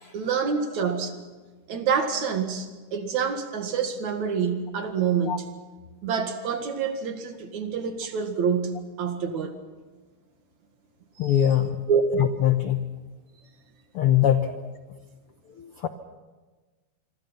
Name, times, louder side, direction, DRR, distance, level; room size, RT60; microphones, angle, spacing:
voice 1, 0.1-1.1 1.7-5.4 6.0-9.5 11.2-11.4 11.9-12.0, right 6 dB, 60° right, 6 dB, 3.0 m, -27 dB
voice 2, 11.2-11.8 12.4-12.9 13.9-14.5 15.6-15.9, left 11 dB, 70° left, 8 dB, 1.3 m, -22 dB
27.0 x 23.5 x 5.7 m, 1.3 s
omnidirectional pair, 3.8 m